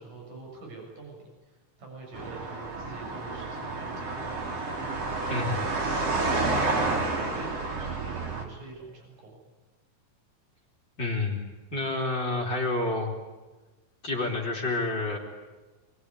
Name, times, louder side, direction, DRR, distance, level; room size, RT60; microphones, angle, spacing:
voice 1, 0.0-4.6 5.1-9.4, right 3 dB, 70° right, 0 dB, 8.6 m, -44 dB
sound 1, 2.1-8.4, right 3 dB, 50° right, 4.3 m, -30 dB
voice 2, 11.0-11.4 11.7-13.1 14.0-15.2, left 2 dB, 35° left, 1 dB, 3.9 m, -29 dB
27.0 x 22.5 x 9.8 m, 1.2 s
omnidirectional pair, 3.7 m